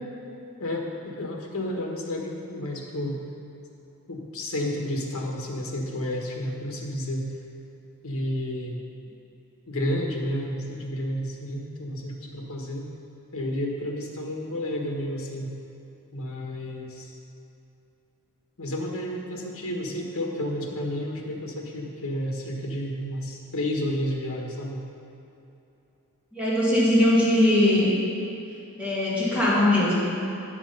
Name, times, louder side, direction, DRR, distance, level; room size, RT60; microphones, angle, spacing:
voice 1, 0.6-3.2 4.1-7.3 8.0-8.8 9.7-12.9 13.3-15.5 16.1-17.2 18.6-24.8, left 1 dB, 65° left, 0 dB, 1.4 m, -31 dB
voice 2, 26.3-27.9 28.8-30.1, left 1 dB, 5° right, -8 dB, 1.9 m, -20 dB
9.3 x 6.1 x 5.4 m, 2.9 s
head